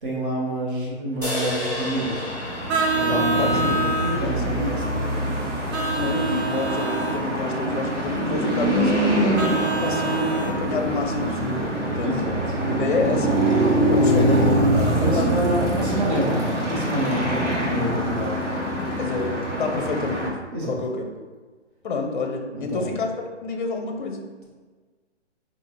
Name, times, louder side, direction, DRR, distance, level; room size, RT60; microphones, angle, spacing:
voice 1, 0.0-2.3 2.9-5.3 12.0-12.4 14.1-18.8 20.5-20.8 22.5-22.9, equal, 45° right, -3 dB, 1.2 m, -28 dB
sound 1, 1.2-4.7, left 1 dB, 10° right, 1.0 m, -33 dB
sound 2, 1.5-20.3, right 1 dB, 85° right, 1.2 m, -24 dB
Vehicle horn car horn honking, 2.7-4.2 5.7-7.2 9.4-10.6, right 3 dB, 65° right, 0.7 m, -26 dB
voice 2, 3.0-3.8 4.2-4.6 6.0-12.3 12.7-13.3 13.9-14.7 15.0-15.8 19.0-20.3 20.6-21.0 21.8-23.1 23.4-24.2, left 3 dB, 45° left, 4 dB, 0.5 m, -28 dB
3.8 x 2.4 x 3.1 m, 1.4 s
hypercardioid pair, 145°, 35 cm